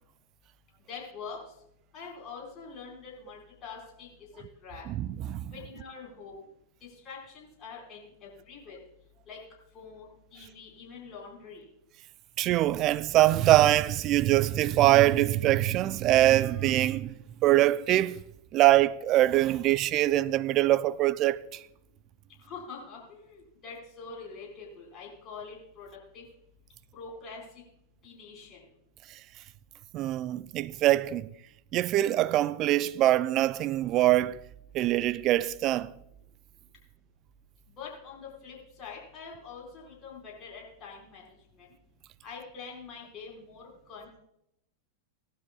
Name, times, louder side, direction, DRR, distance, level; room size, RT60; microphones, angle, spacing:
voice 1, 0.9-1.4 1.9-4.1 4.6-4.8 5.5-6.4 7.0-8.8 9.3-9.4 9.7-11.6 22.4-25.9 26.1-26.2 26.9-27.4 28.0-28.6 37.8-41.2 41.6-41.7 42.2-44.2, left 5 dB, 35° left, 4.8 m, -44 dB
voice 2, 4.9-5.5 12.4-17.1 17.4-18.2 18.5-21.6 29.9-31.3 31.7-34.4 34.7-35.9, right 14 dB, 40° right, 0.5 m, -23 dB
17.5 x 12.0 x 2.3 m
hypercardioid pair, 95°, 0 cm